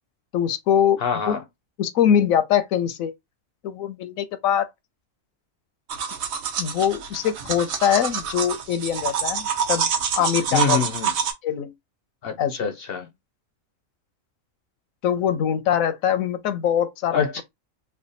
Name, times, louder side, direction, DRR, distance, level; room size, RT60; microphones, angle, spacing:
voice 1, 0.3-1.0 1.3-1.4 1.8-3.1 3.6-4.7 6.6-9.9 10.2-10.8 11.4-11.7 12.4-12.6 15.0-17.2, left 9 dB, 85° left, 1.0 m, -22 dB
voice 2, 1.0-1.4 10.5-11.1 12.2-13.1 17.1-17.4, left 6 dB, 65° left, 0.6 m, -25 dB
sound 1, 5.9-11.3, right 7 dB, 85° right, 1.2 m, -26 dB
3.4 x 2.1 x 3.9 m
omnidirectional pair, 1.4 m